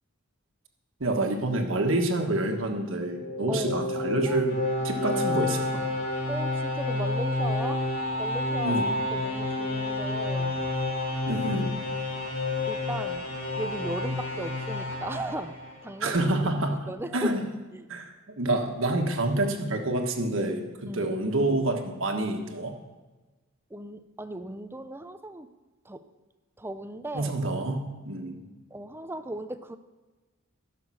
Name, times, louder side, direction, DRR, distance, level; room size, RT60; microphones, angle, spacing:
voice 1, 1.0-5.8 8.6-8.9 11.3-11.9 16.0-17.4 17.9-22.7 27.1-28.4, right 1 dB, 60° right, 4 dB, 1.4 m, -28 dB
sound 1, 3.0-16.0, left 2 dB, 60° left, 3.6 m, -30 dB
voice 2, 3.5-3.9 4.3-4.4 6.3-7.9 8.2-8.8 9.1-10.7 12.7-13.3 13.6-15.6 15.8-16.2 16.7-17.3 17.7-17.9 20.9-21.1 23.7-25.5 25.8-26.0 26.6-27.3 28.7-29.8, right 1 dB, 10° right, 11 dB, 0.5 m, -37 dB
15.0 x 6.7 x 6.3 m, 1.2 s
head